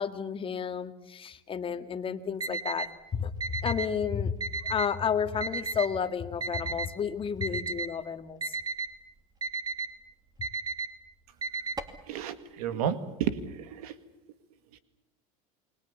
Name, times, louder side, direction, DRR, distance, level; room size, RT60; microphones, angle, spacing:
voice 1, 0.0-3.3 3.6-4.3 4.6-8.4, left 7 dB, 30° left, 9 dB, 1.9 m, -31 dB
Alarm, 2.4-2.9 3.4-3.9 4.4-4.9 5.4-5.9 6.4-6.9 7.4-7.9 8.4-8.9 9.4-9.9 10.4-10.9 11.4-12.0, right 4 dB, 20° right, 2.6 m, -33 dB
voice 2, 12.1-14.0 14.7-14.8, right 8 dB, 90° right, 12 dB, 2.0 m, -32 dB
29.0 x 21.0 x 7.1 m, 0.94 s
supercardioid pair, 115°, 18 cm